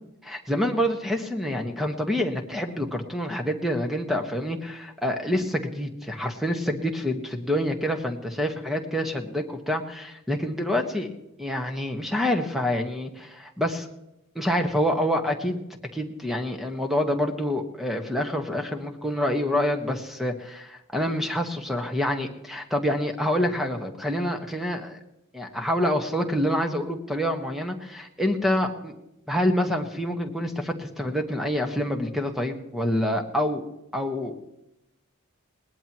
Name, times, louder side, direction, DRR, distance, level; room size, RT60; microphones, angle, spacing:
voice 1, 0.2-11.1 11.4-13.9 14.3-15.6 15.9-25.0 25.3-28.9 29.3-33.6 33.9-34.3, left 1 dB, ahead, 4 dB, 1.4 m, -27 dB
20.5 x 18.5 x 3.1 m, 0.89 s
head